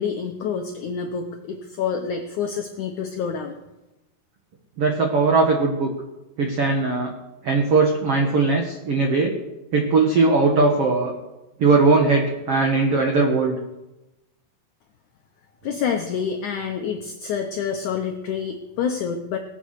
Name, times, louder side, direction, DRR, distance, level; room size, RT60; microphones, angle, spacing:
voice 1, 0.0-3.6 15.6-19.4, left 6 dB, 80° left, 4 dB, 1.7 m, -27 dB
voice 2, 4.8-5.9 6.4-7.1 7.4-9.3 9.7-11.1 11.6-13.5, right 3 dB, 85° right, 3 dB, 1.3 m, -19 dB
19.5 x 8.1 x 6.5 m, 0.99 s
omnidirectional pair, 4.8 m